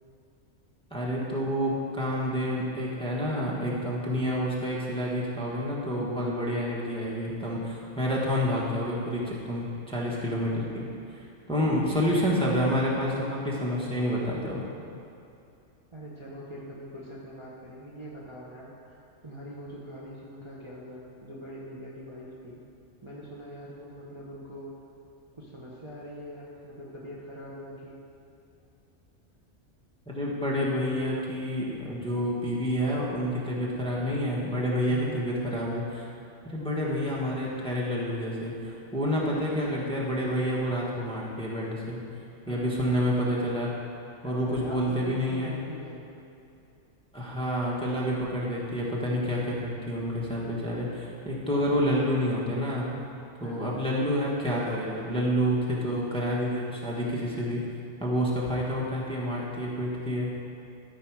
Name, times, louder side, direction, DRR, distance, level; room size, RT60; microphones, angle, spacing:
voice 1, 0.9-14.6 30.1-36.1 36.4-42.0 42.5-43.7 44.2-45.5 47.1-52.9 53.4-57.6 58.0-60.3, equal, 5° left, -5 dB, 1.3 m, -28 dB
voice 2, 15.9-22.6 23.0-24.7 25.4-28.0 34.9-35.3 39.0-39.4 42.5-42.8 44.2-46.1 51.5-51.8 53.4-53.7, right 1 dB, 25° right, -6 dB, 1.0 m, -42 dB
13.0 x 5.3 x 4.7 m, 2.7 s
omnidirectional pair, 1.3 m